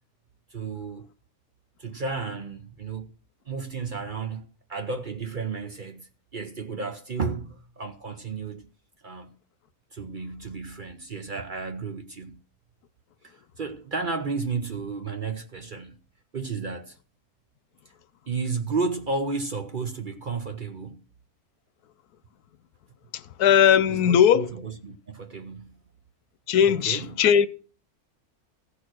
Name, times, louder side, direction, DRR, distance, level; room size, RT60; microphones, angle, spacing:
voice 1, 0.5-1.0 1.8-3.1 3.5-4.4 4.7-8.6 9.0-9.4 9.9-12.4 13.2-16.0 16.3-17.0 18.3-21.0 23.9-25.0 25.3-25.8 26.6-27.2, right 4 dB, 45° right, 0.7 m, -32 dB
voice 2, 23.1-24.5 26.5-27.5, left 9 dB, 85° left, 1.2 m, -19 dB
14.5 x 6.4 x 6.2 m
omnidirectional pair, 1.6 m